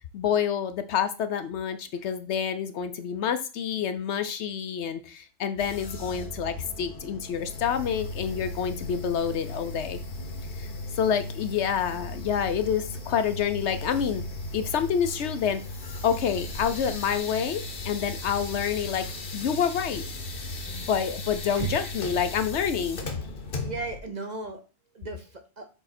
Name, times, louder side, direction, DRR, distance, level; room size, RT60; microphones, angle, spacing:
voice 1, 0.1-10.0 10.5-10.7 11.0-14.2 14.5-15.6 16.0-19.1 19.3-20.1 20.7-23.0, left 8 dB, 65° left, 10 dB, 0.9 m, -28 dB
sound 1, 5.6-24.0, left 2 dB, 50° left, 1.1 m, -36 dB
voice 2, 21.6-21.9 23.6-24.6 24.9-25.7, right 4 dB, 40° right, 6 dB, 0.8 m, -35 dB
7.0 x 3.7 x 4.2 m, 0.34 s
omnidirectional pair, 1.3 m